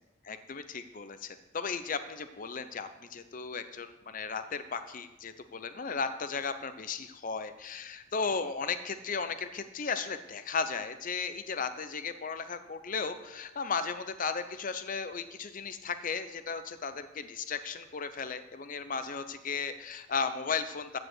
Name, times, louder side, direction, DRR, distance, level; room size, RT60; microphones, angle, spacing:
voice 1, 0.2-21.0, left 5 dB, 40° left, 10 dB, 0.6 m, -35 dB
14.0 x 4.9 x 7.8 m, 1.0 s
head